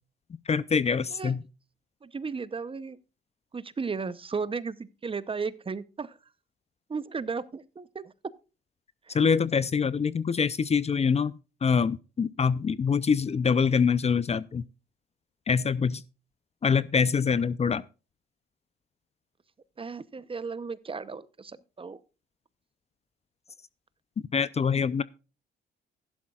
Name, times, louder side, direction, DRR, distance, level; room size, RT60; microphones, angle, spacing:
voice 1, 0.5-1.4 9.1-11.3 11.6-14.6 15.5-16.0 16.6-17.8 24.3-25.0, left 6 dB, 30° left, 0.5 m, -25 dB
voice 2, 2.0-3.0 3.5-6.1 6.9-8.1 9.1-9.2 19.8-22.0, right 5 dB, 25° right, 0.7 m, -35 dB
14.5 x 11.5 x 2.4 m
cardioid pair, 90°, 20 cm